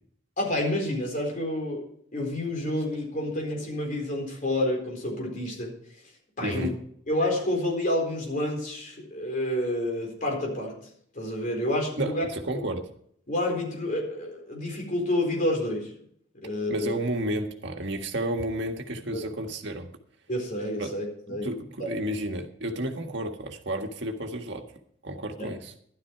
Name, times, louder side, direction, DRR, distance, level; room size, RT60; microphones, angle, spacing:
voice 1, 0.4-1.8 2.1-5.7 6.4-6.7 7.1-10.8 11.1-12.2 13.3-15.9 16.4-16.9 19.1-19.2 20.3-21.5 21.8-22.0 25.4-25.5, left 1 dB, 45° left, 1 dB, 4.2 m, -29 dB
voice 2, 6.4-6.8 12.0-12.9 16.7-19.9 20.8-20.9 21.3-24.6 25.0-25.7, right 1 dB, 65° right, 4 dB, 1.6 m, -31 dB
12.5 x 12.0 x 4.6 m, 0.66 s
head